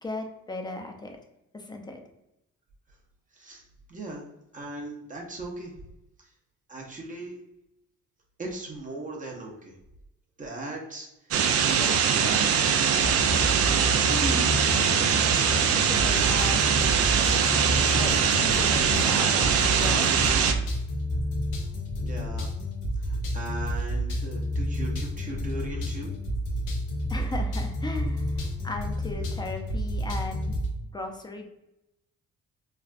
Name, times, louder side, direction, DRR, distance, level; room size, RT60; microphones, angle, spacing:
voice 1, 0.0-1.2 1.5-2.0 13.9-14.5 15.7-16.8 18.0-20.1 27.1-30.6 30.9-31.5, left 2 dB, 15° left, 4 dB, 0.5 m, -36 dB
voice 2, 3.9-4.2 4.5-5.7 6.2-6.3 6.7-7.4 8.4-9.7 10.4-11.1 11.7-12.6 22.0-22.5 23.0-26.1, right 2 dB, 25° right, -1 dB, 0.7 m, -38 dB
sound 1, 11.3-20.5, right 7 dB, 50° right, 0.4 m, -22 dB
sound 2, 13.0-30.7, equal, 85° left, 0.7 m, -30 dB
3.3 x 2.4 x 2.4 m, 0.88 s
cardioid pair, 90°, 30 cm